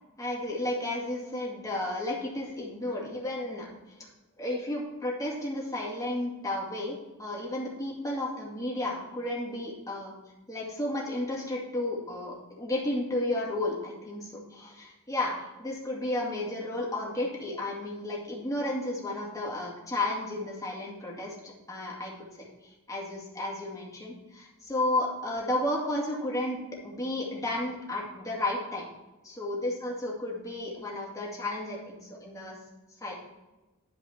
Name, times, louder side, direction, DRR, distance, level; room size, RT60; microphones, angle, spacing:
voice 1, 0.2-3.7 4.4-10.1 10.5-15.3 15.6-26.6 26.8-28.9 29.2-32.6 33.0-33.1, left 1 dB, 15° left, -3 dB, 2.1 m, -33 dB
11.5 x 4.9 x 4.3 m, 1.1 s
head